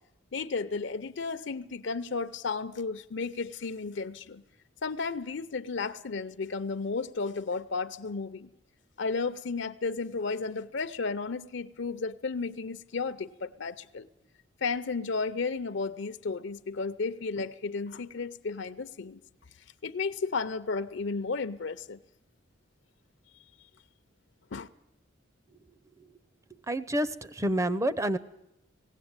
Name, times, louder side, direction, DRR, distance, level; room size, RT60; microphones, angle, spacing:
voice 1, 0.3-4.4 4.8-8.5 9.0-14.1 14.6-19.2 19.8-22.0 24.5-24.7, left 4 dB, 65° left, 12 dB, 0.6 m, -33 dB
voice 2, 26.7-28.2, right 1 dB, 15° right, 12 dB, 0.7 m, -28 dB
18.5 x 16.0 x 8.8 m, 0.85 s
head